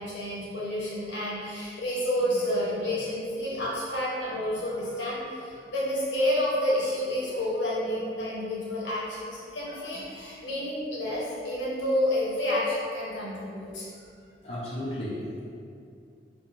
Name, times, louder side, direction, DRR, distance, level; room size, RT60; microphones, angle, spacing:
voice 1, 0.0-13.9, left 1 dB, 85° left, -7 dB, 0.7 m, -29 dB
voice 2, 14.4-15.5, left 1 dB, 35° left, -7 dB, 0.3 m, -34 dB
2.8 x 2.3 x 2.4 m, 2.4 s
head